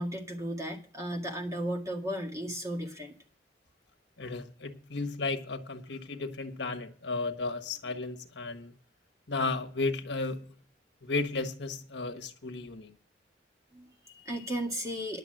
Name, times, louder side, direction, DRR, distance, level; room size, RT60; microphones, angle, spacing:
voice 1, 0.0-3.1 13.7-15.2, equal, 20° right, 1.9 m, -35 dB
voice 2, 4.2-8.7 9.3-10.6 11.0-12.9, left 3 dB, 80° left, 1.4 m, -34 dB
11.0 x 6.7 x 7.7 m
head